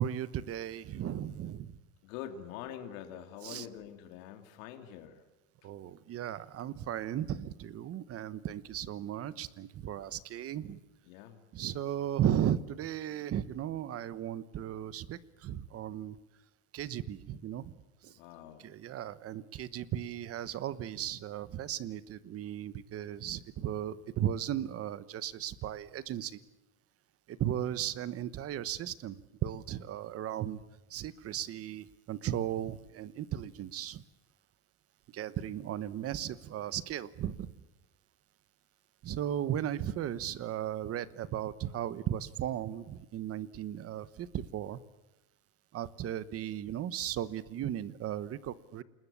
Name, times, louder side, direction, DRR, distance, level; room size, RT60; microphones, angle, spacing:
voice 1, 0.0-1.8 3.4-3.7 5.6-10.8 11.5-16.2 16.7-17.7 18.0-18.2 18.6-26.4 27.3-30.6 30.9-34.0 35.1-37.6 39.0-44.8 45.7-48.8, right 11 dB, 35° right, 16 dB, 1.1 m, -36 dB
voice 2, 2.0-5.2 11.1-11.4 18.1-18.7, left 10 dB, 75° left, 6 dB, 2.8 m, -45 dB
29.0 x 20.5 x 8.4 m, 1.0 s
supercardioid pair, 140°, 41 cm